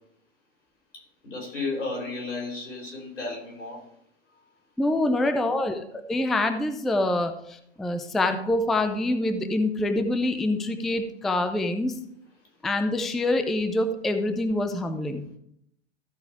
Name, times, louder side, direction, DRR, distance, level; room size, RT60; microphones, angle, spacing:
voice 1, 0.9-3.8 5.1-5.3, left 3 dB, 90° left, -1 dB, 4.8 m, -34 dB
voice 2, 4.8-12.0 12.6-15.2, left 2 dB, ahead, 8 dB, 0.3 m, -26 dB
14.5 x 4.8 x 4.7 m, 0.73 s
hypercardioid pair, 120°, 36 cm